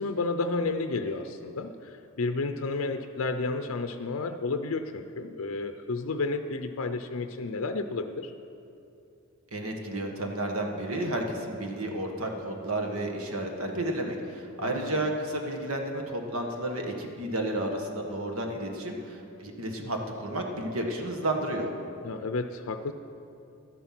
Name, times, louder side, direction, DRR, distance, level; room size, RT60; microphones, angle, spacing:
voice 1, 0.0-8.3 14.6-15.1 22.0-22.9, left 3 dB, 70° left, 8 dB, 0.5 m, -31 dB
voice 2, 9.5-21.7, right 1 dB, 75° right, 3 dB, 1.6 m, -32 dB
12.5 x 11.0 x 6.0 m, 2.7 s
head